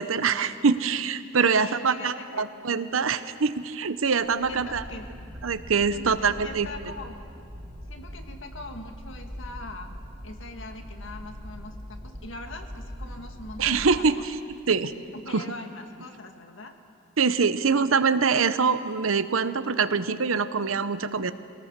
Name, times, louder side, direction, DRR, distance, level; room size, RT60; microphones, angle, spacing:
voice 1, 0.0-4.8 5.4-6.7 13.6-14.3 14.7-14.9 15.3-15.4 17.2-21.3, right 5 dB, 90° right, 13 dB, 0.8 m, -24 dB
voice 2, 1.4-2.9 4.5-5.1 5.9-7.2 7.9-10.0 10.2-14.3 15.1-16.7, left 2 dB, 70° left, 5 dB, 1.8 m, -42 dB
sound 1, 4.0-14.0, equal, 40° right, 2.9 m, -41 dB
23.0 x 18.0 x 7.5 m, 2.4 s
head